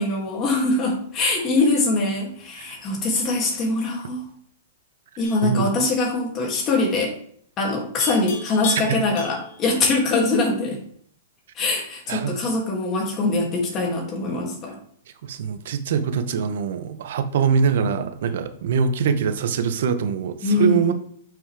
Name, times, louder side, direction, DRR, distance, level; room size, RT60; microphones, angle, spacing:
voice 1, 0.0-4.2 5.2-7.1 7.6-10.8 11.6-14.7 20.4-20.9, left 2 dB, 30° left, -1 dB, 2.4 m, -23 dB
Livestock farm animals working animals, 5.2-5.5 8.0-9.6, left 3 dB, 60° left, 2.7 m, -35 dB
voice 2, 5.4-5.9 8.9-9.0 12.1-12.4 15.2-20.9, right 6 dB, 65° right, 10 dB, 0.8 m, -23 dB
6.8 x 6.1 x 3.4 m, 0.63 s
hypercardioid pair, 140°, 0 cm